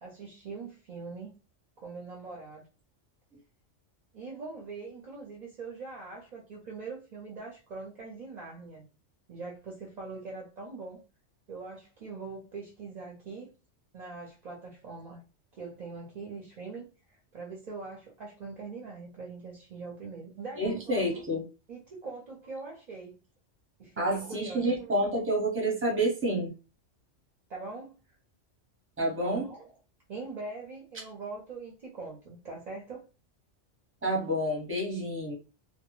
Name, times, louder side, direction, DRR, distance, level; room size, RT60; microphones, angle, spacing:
voice 1, 0.0-1.4 1.8-2.7 4.1-8.8 9.3-11.0 11.5-13.5 13.9-15.2 15.5-16.9 17.3-21.1 21.7-23.2 23.8-24.8 27.5-27.9 29.2-29.7 30.1-33.1, right 4 dB, 50° right, 0.5 m, -42 dB
voice 2, 20.6-21.4 24.0-26.5 29.0-29.5 34.0-35.4, right 1 dB, 15° right, 0.7 m, -29 dB
2.1 x 2.1 x 2.9 m
omnidirectional pair, 1.2 m